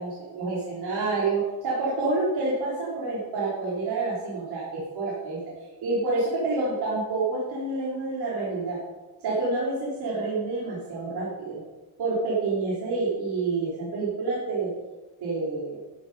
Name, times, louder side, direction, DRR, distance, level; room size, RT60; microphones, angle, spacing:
voice 1, 0.0-5.4 5.8-8.8 9.2-11.6 12.0-14.7 15.2-15.8, right 3 dB, 70° right, -6 dB, 3.3 m, -28 dB
12.0 x 7.5 x 5.3 m, 1.1 s
cardioid pair, 175°, 40 cm